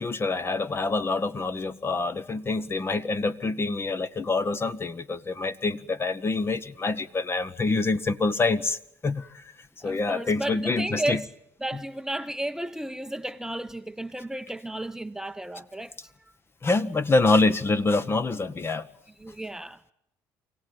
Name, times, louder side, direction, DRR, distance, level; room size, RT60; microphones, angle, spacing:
voice 1, 0.0-8.8 9.0-9.4 9.8-11.2 16.6-18.9, left 3 dB, 30° left, 1.2 m, -26 dB
voice 2, 9.8-11.3 11.6-16.1 19.2-19.9, right 1 dB, 5° right, 0.8 m, -33 dB
24.5 x 17.5 x 9.6 m
supercardioid pair, 70°, 8 cm